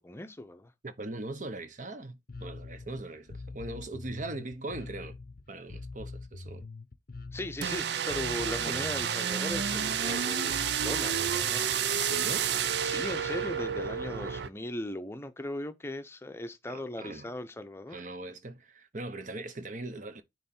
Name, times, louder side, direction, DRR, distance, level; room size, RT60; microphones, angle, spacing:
voice 1, 0.0-0.7 7.3-11.7 12.8-18.0, left 1 dB, 15° left, 0.7 m, -38 dB
voice 2, 0.8-5.2 5.5-6.6 8.6-8.9 11.9-12.5 16.7-17.3 17.9-20.2, right 2 dB, 45° right, 0.9 m, -40 dB
Bass guitar, 2.3-11.8, left 3 dB, 50° left, 0.6 m, -44 dB
sound 1, 7.6-14.5, right 8 dB, 65° right, 0.5 m, -30 dB
9.2 x 3.2 x 4.3 m
head